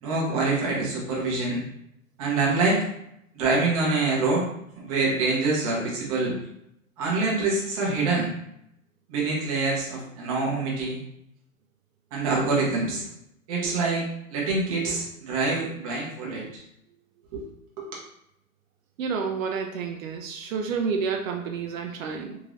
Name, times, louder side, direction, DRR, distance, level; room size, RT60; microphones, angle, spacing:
voice 1, 0.0-1.6 2.2-2.8 3.3-4.4 4.8-6.4 7.0-8.3 9.1-11.0 12.1-13.0 13.5-14.0 14.3-16.6 17.3-17.4 17.8-17.9, right 3 dB, 25° right, -4 dB, 0.8 m, -25 dB
voice 2, 19.0-22.4, right 5 dB, 70° right, 3 dB, 0.5 m, -29 dB
3.7 x 2.5 x 3.1 m, 0.77 s
supercardioid pair, 175°, 42 cm